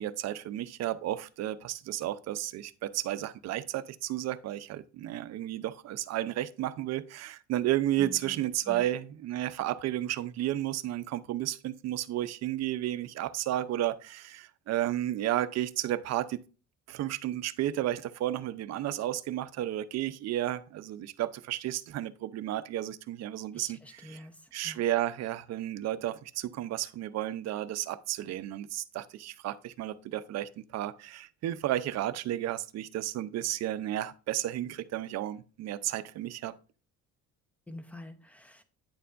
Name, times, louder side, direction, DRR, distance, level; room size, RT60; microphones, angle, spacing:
voice 1, 0.0-16.4 16.9-36.5, right 13 dB, 65° right, 0.6 m, -32 dB
voice 2, 8.0-8.8 23.5-24.8 37.7-38.6, left 1 dB, 5° left, 0.8 m, -47 dB
9.4 x 6.8 x 2.5 m
cardioid pair, 155°, 29 cm